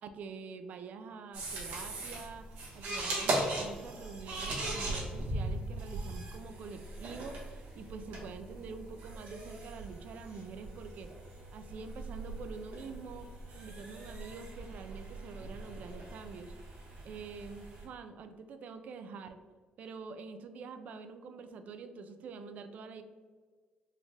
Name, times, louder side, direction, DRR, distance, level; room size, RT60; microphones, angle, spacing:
voice 1, 0.0-2.5 2.7-11.1 11.5-13.3 13.5-16.5 17.0-19.4 19.8-23.0, right 5 dB, 60° right, 8 dB, 0.3 m, -46 dB
sound 1, 1.3-17.8, right 2 dB, 85° right, 1.2 m, -39 dB
4.1 x 2.4 x 3.2 m, 1.5 s
cardioid pair, 140°, 3 cm